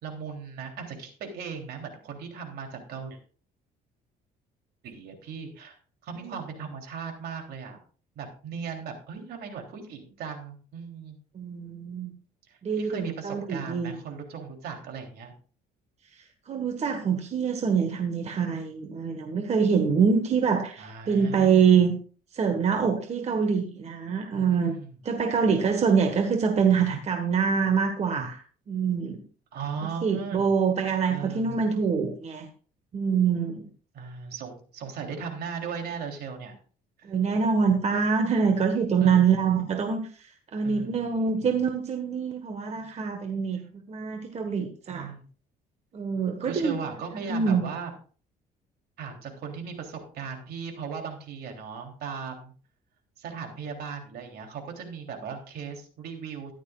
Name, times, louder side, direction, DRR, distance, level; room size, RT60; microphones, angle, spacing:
voice 1, 0.0-3.2 4.8-5.8 6.0-7.8 8.1-11.2 12.5-15.3 20.8-21.8 24.3-24.9 29.5-30.5 31.1-31.6 33.9-36.6 37.0-37.1 38.3-38.4 39.0-39.4 40.6-41.0 42.7-42.9 44.9-45.3 46.4-47.9 49.0-52.5 53.2-56.5, right 6 dB, 70° right, 3 dB, 3.3 m, -38 dB
voice 2, 11.3-12.1 12.6-14.0 16.1-21.9 22.3-24.7 25.0-29.2 29.8-32.5 32.9-33.7 37.0-45.1 45.9-46.8 47.3-47.7, right 6 dB, 40° right, 5 dB, 1.5 m, -25 dB
14.5 x 11.5 x 2.4 m, 0.40 s
cardioid pair, 110°, 17 cm